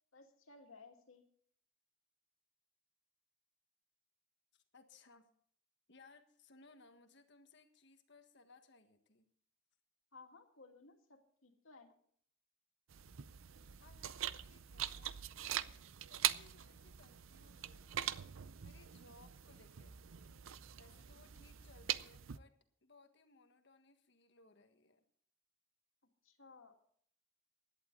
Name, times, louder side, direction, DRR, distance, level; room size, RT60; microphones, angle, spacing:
voice 1, 0.1-1.2 10.1-11.9 26.2-26.8, left 4 dB, 85° left, 3 dB, 2.3 m, -59 dB
voice 2, 4.5-5.3 5.9-9.3 13.8-15.7 16.1-17.8 18.6-20.0 20.8-25.0, left 3 dB, 60° left, 7 dB, 1.6 m, -64 dB
sound 1, 12.9-22.4, right 11 dB, 80° right, 0.6 m, -43 dB
16.5 x 11.5 x 4.0 m, 0.62 s
head